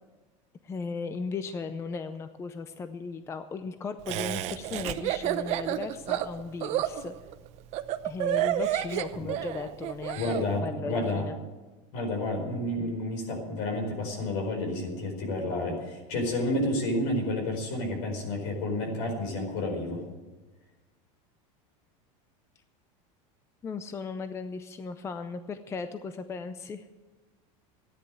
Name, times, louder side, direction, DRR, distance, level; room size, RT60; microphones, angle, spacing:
voice 1, 0.6-7.1 8.0-11.4 23.6-26.9, left 4 dB, 15° left, 10 dB, 0.5 m, -36 dB
Laughter, 4.1-10.4, right 13 dB, 40° right, 0.7 m, -30 dB
voice 2, 10.1-11.3 11.9-20.0, left 1 dB, 65° left, 3 dB, 4.7 m, -30 dB
14.0 x 10.0 x 7.6 m, 1.2 s
supercardioid pair, 150°, 17 cm